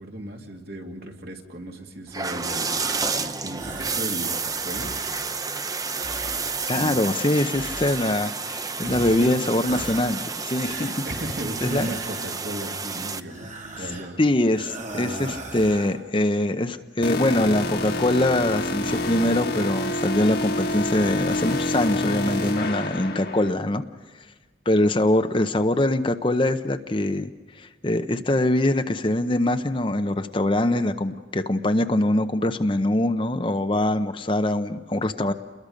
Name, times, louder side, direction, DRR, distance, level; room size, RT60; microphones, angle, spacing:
voice 1, 0.0-2.8 3.1-5.0 6.7-7.0 9.0-9.3 11.1-14.2 23.2-23.3, right 1 dB, 55° right, 2 dB, 2.7 m, -35 dB
sound 1, 2.1-13.2, right 4 dB, 20° right, 0.7 m, -30 dB
sound 2, 3.5-4.1 4.5-5.3 5.9-7.0 7.5-8.5 8.8-9.3 9.6-10.3 10.6-12.5 13.2-14.2 14.5-16.0, right 2 dB, 40° right, 2.4 m, -39 dB
voice 2, 6.7-10.9 11.7-11.9 14.2-23.8 24.7-27.3 27.6-35.3, left 1 dB, 30° left, 8 dB, 0.8 m, -23 dB
sound 3, 17.0-23.5, left 1 dB, 55° left, 1.6 m, -27 dB
29.5 x 22.0 x 5.2 m, 1.3 s
head